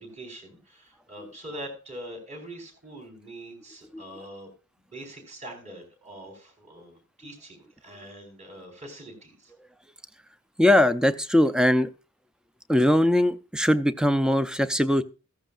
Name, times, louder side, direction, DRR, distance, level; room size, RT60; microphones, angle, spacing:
voice 1, 0.0-4.5 4.9-9.5, right 1 dB, 35° right, 3 dB, 4.5 m, -43 dB
voice 2, 10.6-11.9 12.7-15.0, left 1 dB, 5° right, 12 dB, 0.5 m, -21 dB
14.5 x 14.0 x 2.5 m, 0.32 s
head